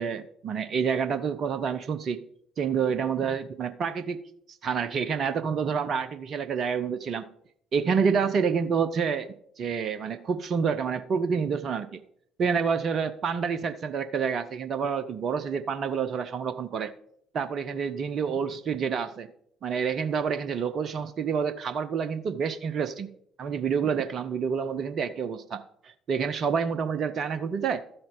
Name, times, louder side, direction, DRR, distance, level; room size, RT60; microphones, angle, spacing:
voice 1, 0.0-2.2 2.6-4.2 4.6-7.3 7.7-9.3 9.6-12.0 12.4-16.9 17.3-19.3 19.6-23.1 23.4-27.8, right 6 dB, 45° right, 12 dB, 0.6 m, -28 dB
12.5 x 7.8 x 3.8 m, 0.68 s
figure-of-eight pair, 50°, 0 cm